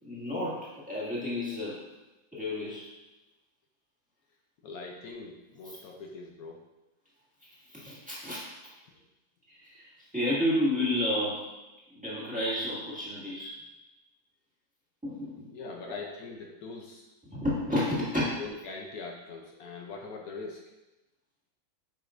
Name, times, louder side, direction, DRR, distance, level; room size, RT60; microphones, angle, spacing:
voice 1, 0.0-1.9 2.3-2.9 7.4-8.4 9.5-11.5 11.9-13.5 15.0-15.5 15.8-16.0 17.2-18.2, left 1 dB, 5° right, -8 dB, 1.8 m, -31 dB
voice 2, 4.6-6.6 15.5-17.1 18.4-20.7, left 3 dB, 70° left, 0 dB, 1.1 m, -42 dB
7.8 x 5.1 x 2.5 m, 1.0 s
omnidirectional pair, 1.6 m